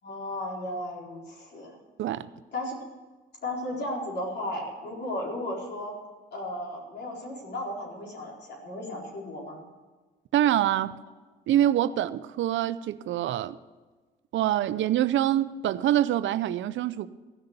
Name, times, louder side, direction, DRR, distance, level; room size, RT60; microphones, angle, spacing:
voice 1, 0.0-1.8 2.5-2.7 3.4-5.9 6.3-9.6, left 1 dB, 60° left, 4.2 m, -35 dB
voice 2, 2.0-2.3 10.3-10.9 11.5-13.6 14.3-17.1, right 12 dB, 75° right, 0.6 m, -25 dB
15.5 x 6.7 x 8.1 m
cardioid pair, 90°, 20 cm